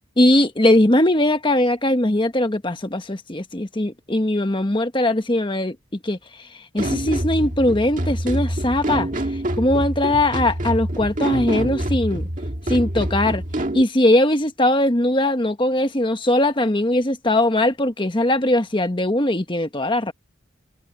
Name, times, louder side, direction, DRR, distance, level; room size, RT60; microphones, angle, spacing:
voice 1, 0.2-5.7 6.0-6.5 6.7-9.1 9.6-12.2 12.7-13.4 13.7-20.1, left 1 dB, 25° left, 1.3 m, -20 dB
sound 1, 6.8-13.8, right 1 dB, 40° right, 1.9 m, -26 dB
head